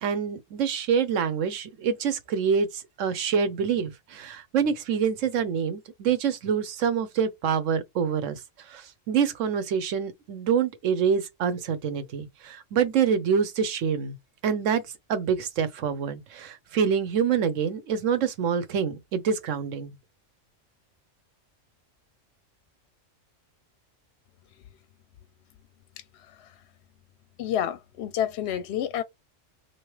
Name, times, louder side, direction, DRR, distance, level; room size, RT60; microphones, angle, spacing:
voice 1, 0.0-8.4 8.7-14.2 14.4-14.8 15.1-19.9, right 7 dB, 75° right, 1.1 m, -26 dB
voice 2, 27.4-29.0, left 10 dB, 65° left, 0.8 m, -29 dB
3.9 x 3.0 x 3.1 m
omnidirectional pair, 1.3 m